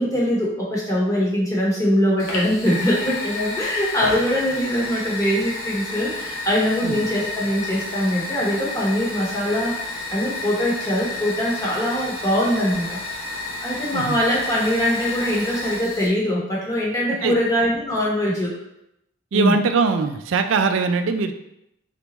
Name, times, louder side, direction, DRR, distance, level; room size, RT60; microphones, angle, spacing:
voice 1, 0.0-13.0 13.6-18.5 19.3-19.6, equal, 15° left, -5 dB, 1.0 m, -22 dB
Fire, 2.2-16.1, left 3 dB, 75° left, 0.9 m, -31 dB
voice 2, 19.3-21.3, right 4 dB, 65° right, 8 dB, 0.4 m, -21 dB
4.0 x 3.4 x 3.0 m, 0.81 s
head